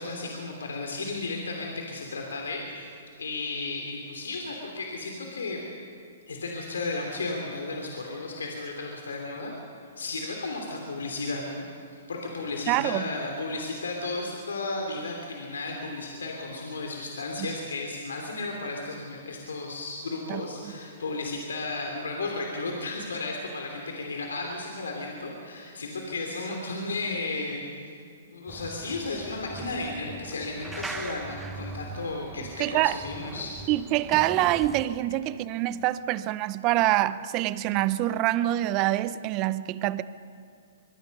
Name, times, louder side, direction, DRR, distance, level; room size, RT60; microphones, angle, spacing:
voice 1, 0.0-2.9 3.2-5.6 6.3-9.5 10.0-27.6 28.3-33.6, left 3 dB, 90° left, 3.3 m, -34 dB
voice 2, 12.7-13.0 20.3-20.7 32.6-33.0 33.7-40.0, right 15 dB, 35° right, 0.7 m, -25 dB
sound 1, 28.5-34.9, right 3 dB, 10° right, 1.3 m, -41 dB
24.0 x 23.5 x 5.5 m
hypercardioid pair, 135°, 0 cm